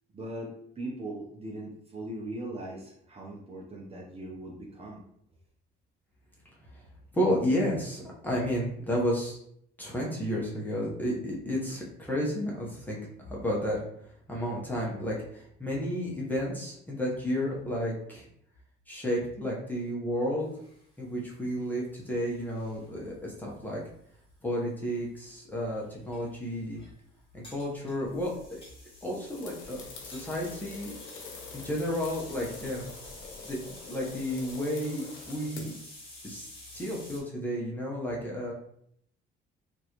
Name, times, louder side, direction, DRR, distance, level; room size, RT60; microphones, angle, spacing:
voice 1, 0.1-5.0, right 1 dB, 30° right, -3 dB, 0.7 m, -40 dB
voice 2, 7.1-9.4 9.8-13.8 14.3-18.3 18.9-20.5 21.0-23.8 24.4-26.8 27.3-28.6 29.0-30.9 31.5-32.9 33.4-35.7 36.2-36.5 36.7-38.5, equal, 10° left, -4 dB, 1.0 m, -32 dB
sound 1, 20.4-37.2, left 2 dB, 25° left, 1.2 m, -50 dB
sound 2, 29.3-35.8, left 4 dB, 75° left, 0.9 m, -46 dB
3.0 x 2.6 x 3.0 m, 0.69 s
cardioid pair, 110°, 20 cm